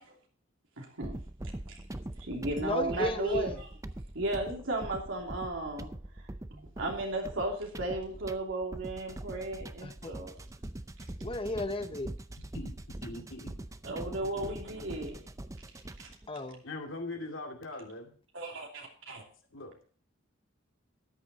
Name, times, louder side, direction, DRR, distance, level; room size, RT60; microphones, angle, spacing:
voice 1, 0.8-1.2 1.7-1.8 2.2-3.7 4.1-5.9 6.2-10.4 13.1-13.2 13.8-15.2 16.0-16.1 18.3-19.2, right 2 dB, 75° right, 2.9 m, -35 dB
sound 1, 1.0-16.3, right 1 dB, 15° right, 0.5 m, -43 dB
voice 2, 2.6-3.5 9.8-10.1 11.2-12.1 16.3-16.6, left 1 dB, 30° left, 0.9 m, -33 dB
voice 3, 13.0-13.5 16.6-18.1 19.5-19.7, left 2 dB, 80° left, 2.5 m, -41 dB
13.5 x 9.5 x 4.1 m
head